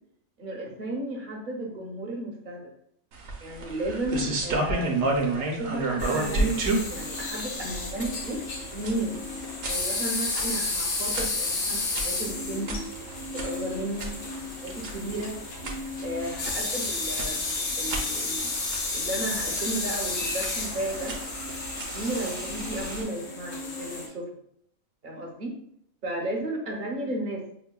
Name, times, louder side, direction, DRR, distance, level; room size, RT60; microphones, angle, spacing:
voice 1, 0.4-2.6 3.4-5.1 5.5-8.4 8.7-9.2 9.7-12.7 13.3-14.1 14.6-15.4 16.0-18.6 18.9-21.2 21.9-24.3 25.0-25.6 26.0-27.5, right 1 dB, 45° right, 0 dB, 0.7 m, -33 dB
sound 1, 3.1-23.0, right 2 dB, 65° right, 1.0 m, -33 dB
sound 2, 6.0-24.1, left 3 dB, 80° left, 1.3 m, -32 dB
6.0 x 2.2 x 2.2 m, 0.70 s
omnidirectional pair, 1.5 m